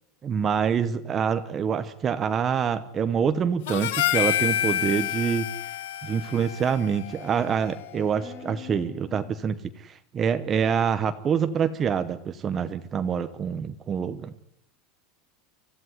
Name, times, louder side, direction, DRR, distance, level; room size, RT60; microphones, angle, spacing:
voice 1, 0.2-5.5 6.0-14.3, right 7 dB, 20° right, 10 dB, 0.8 m, -26 dB
Harmonica, 3.7-8.1, left 12 dB, 70° left, 1.2 m, -29 dB
voice 2, 8.1-9.5, left 9 dB, 30° left, 6 dB, 4.2 m, -43 dB
25.0 x 15.5 x 9.6 m, 0.78 s
supercardioid pair, 180°, 0 cm